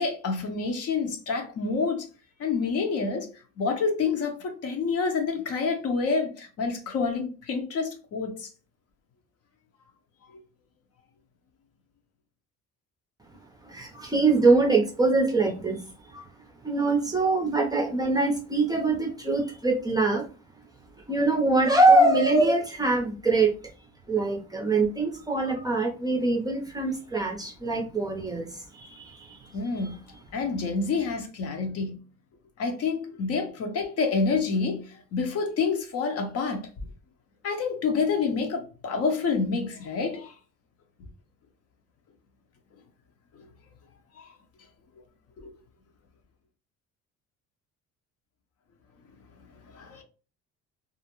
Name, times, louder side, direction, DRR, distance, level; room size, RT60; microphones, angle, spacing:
voice 1, 0.0-2.1 2.4-8.5 10.3-10.4 29.5-30.0 30.3-32.0 32.6-36.9 37.4-40.3 43.3-43.5 44.1-44.3 45.4-45.5 49.6-50.0, left 4 dB, 55° left, 0.7 m, -28 dB
voice 2, 13.6-16.3 16.6-20.2 21.1-23.5 24.1-29.5, right 2 dB, 15° right, 0.5 m, -23 dB
2.4 x 2.0 x 2.9 m
cardioid pair, 110°, 30 cm